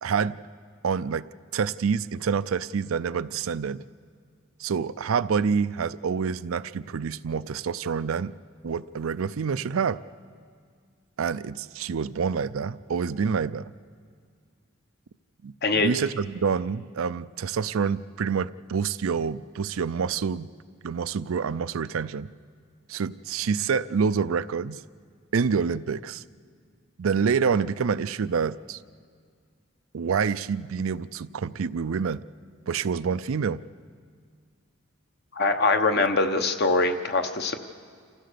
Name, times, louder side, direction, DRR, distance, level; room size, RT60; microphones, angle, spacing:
voice 1, 0.0-0.4 0.8-1.3 1.5-3.8 4.6-8.3 8.6-10.0 11.2-13.7 15.4-20.5 20.8-22.3 22.9-24.8 25.3-26.2 27.0-28.8 29.9-32.2 32.7-33.6 35.9-36.1, right 6 dB, 75° right, 15 dB, 0.5 m, -27 dB
voice 2, 15.6-15.9 35.3-37.6, left 3 dB, 50° left, 7 dB, 1.1 m, -23 dB
28.0 x 15.5 x 6.8 m, 2.1 s
head